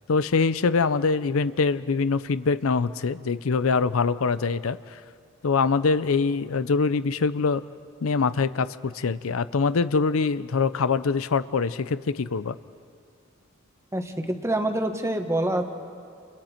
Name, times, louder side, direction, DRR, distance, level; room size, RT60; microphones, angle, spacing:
voice 1, 0.1-5.0 5.4-7.6 8.0-12.6, left 4 dB, 80° left, 14 dB, 0.6 m, -24 dB
voice 2, 13.9-15.6, right 1 dB, 15° right, 5 dB, 1.4 m, -26 dB
29.5 x 29.0 x 4.4 m, 2.3 s
head